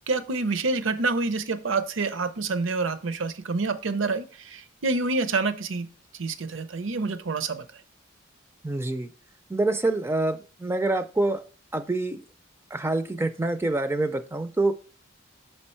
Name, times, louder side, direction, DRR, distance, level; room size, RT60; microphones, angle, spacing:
voice 1, 0.1-5.9 6.2-7.6, right 3 dB, 65° right, 0.6 m, -27 dB
voice 2, 8.6-9.1 9.5-11.4 11.7-12.2 12.7-14.7, right 2 dB, 10° right, 0.4 m, -26 dB
6.7 x 4.4 x 4.3 m
head